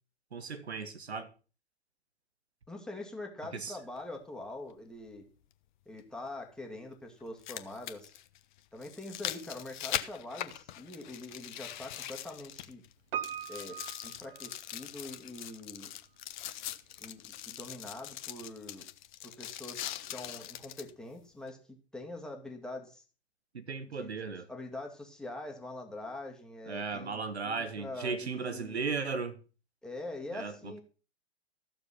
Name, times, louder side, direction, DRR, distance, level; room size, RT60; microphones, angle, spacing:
voice 1, 0.3-1.3 3.5-3.8 23.5-24.5 26.7-29.4 30.3-30.8, right 4 dB, 75° right, 1.7 m, -36 dB
voice 2, 2.7-5.2 5.9-8.1 8.7-12.8 13.5-15.9 17.0-18.8 19.2-23.0 23.9-24.1 24.5-28.8 29.8-30.8, left 2 dB, ahead, 2.2 m, -44 dB
sound 1, 4.0-4.1 6.0-6.1 7.2-12.9 13.2-20.9 21.5-21.6, left 12 dB, 45° left, 1.1 m, -41 dB
Piano, 13.1-15.2 15.4-15.5, right 9 dB, 55° right, 1.0 m, -40 dB
14.5 x 7.0 x 5.8 m
figure-of-eight pair, 105°, 33 cm